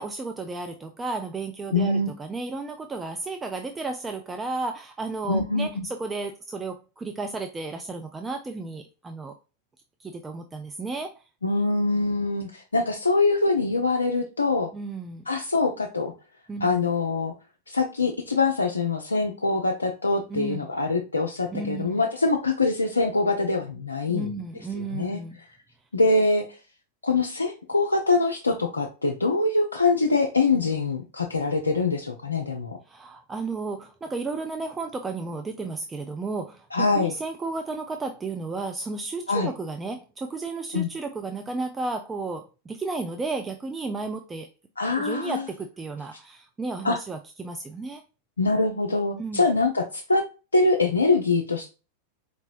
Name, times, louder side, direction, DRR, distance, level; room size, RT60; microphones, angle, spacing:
voice 1, 0.0-9.3 10.0-11.2 14.7-15.2 16.5-16.8 20.3-20.7 21.5-22.0 24.1-25.4 32.9-36.7 36.9-44.5 45.0-48.0 49.2-49.4, right 3 dB, 15° right, 5 dB, 0.3 m, -33 dB
voice 2, 1.7-2.1 5.3-5.8 11.4-14.7 15.3-16.1 16.6-17.3 17.7-24.4 24.7-25.2 25.9-26.6 27.0-32.8 36.7-37.1 39.3-39.5 40.7-40.9 44.8-45.5 46.8-47.0 48.4-50.2 50.5-51.7, left 3 dB, 80° left, 2 dB, 0.4 m, -24 dB
4.3 x 3.0 x 2.5 m, 0.32 s
figure-of-eight pair, 90°, 0 cm